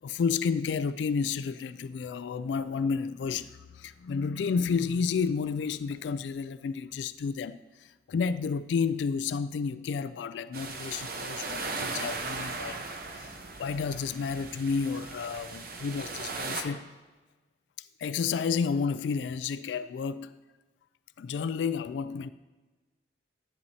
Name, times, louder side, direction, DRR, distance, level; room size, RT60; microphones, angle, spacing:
voice 1, 0.0-13.3 13.6-16.9 17.8-20.4 21.2-22.3, left 5 dB, 80° left, 0.3 m, -31 dB
sound 1, 10.5-16.6, right 3 dB, 55° right, 0.9 m, -37 dB
11.0 x 10.5 x 2.8 m
head